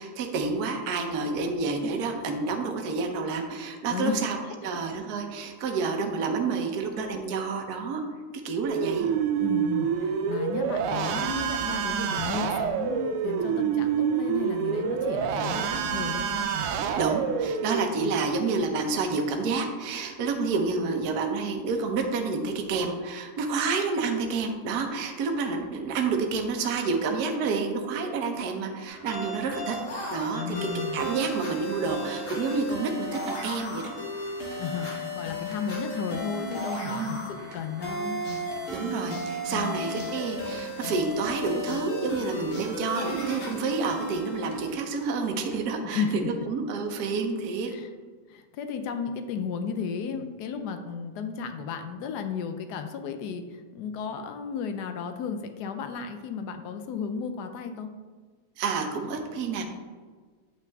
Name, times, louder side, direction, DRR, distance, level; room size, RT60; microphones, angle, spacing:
voice 1, 0.0-4.4 4.6-8.0 8.4-9.1 17.0-29.8 30.1-30.5 30.9-34.0 36.8-37.2 38.7-47.7 58.6-59.6, right 4 dB, 55° right, 3 dB, 1.2 m, -29 dB
voice 2, 3.9-4.8 9.4-16.4 18.0-18.2 30.3-31.0 34.6-38.2 39.5-39.8 45.9-46.4 47.7-47.9 48.3-57.9, left 6 dB, 75° left, 7 dB, 0.9 m, -34 dB
sound 1, 8.6-17.8, right 7 dB, 90° right, 1.6 m, -27 dB
sound 2, 28.9-42.1 42.5-42.7 43.5-43.6 44.4-44.6 45.5-45.6, equal, 35° right, 1.9 m, -45 dB
sound 3, 29.7-45.2, left 1 dB, 40° left, 1.7 m, -35 dB
9.1 x 5.8 x 3.5 m, 1.5 s
omnidirectional pair, 2.4 m